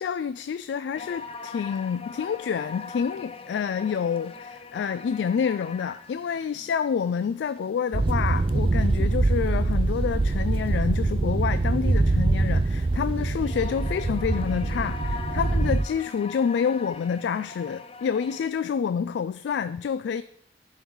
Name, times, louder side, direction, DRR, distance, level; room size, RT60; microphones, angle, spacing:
voice 1, 0.0-20.2, left 7 dB, 85° left, 0.3 m, -28 dB
sound 1, 0.9-18.5, left 4 dB, 35° left, 0.5 m, -43 dB
sound 2, 7.9-15.8, right 2 dB, 30° right, 0.4 m, -24 dB
11.0 x 5.5 x 4.6 m
head